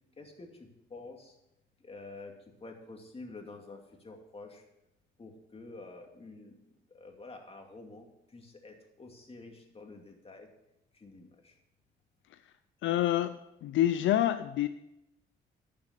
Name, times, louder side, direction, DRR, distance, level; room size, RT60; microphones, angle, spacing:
voice 1, 0.2-1.4 1.8-4.6 5.2-10.5 10.9-11.6, left 3 dB, 30° left, 3 dB, 2.5 m, -49 dB
voice 2, 12.8-14.7, left 12 dB, 75° left, 11 dB, 0.6 m, -27 dB
12.0 x 6.9 x 6.7 m, 0.85 s
cardioid pair, 90°, 20 cm